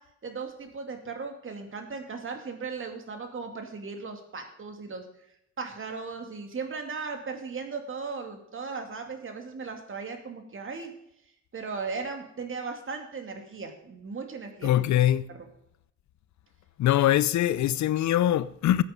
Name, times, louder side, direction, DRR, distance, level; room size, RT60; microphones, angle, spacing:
voice 1, 0.2-5.0 5.6-10.9 11.5-14.7 15.3-15.5, right 4 dB, 45° right, 2.7 m, -37 dB
voice 2, 14.6-15.2 16.8-18.8, left 12 dB, 70° left, 0.6 m, -23 dB
14.0 x 8.6 x 5.3 m
cardioid pair, 90°, 30 cm